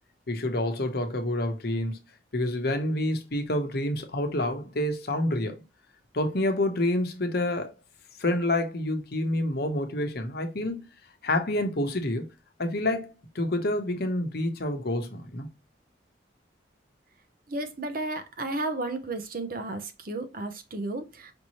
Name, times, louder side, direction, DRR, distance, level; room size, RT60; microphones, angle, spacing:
voice 1, 0.3-2.0 2.3-5.6 6.1-7.7 8.2-10.8 11.2-12.3 12.6-15.5, left 1 dB, 55° left, 1.0 m, -28 dB
voice 2, 17.5-21.3, right 2 dB, 50° right, 0.8 m, -33 dB
5.3 x 2.8 x 3.0 m
head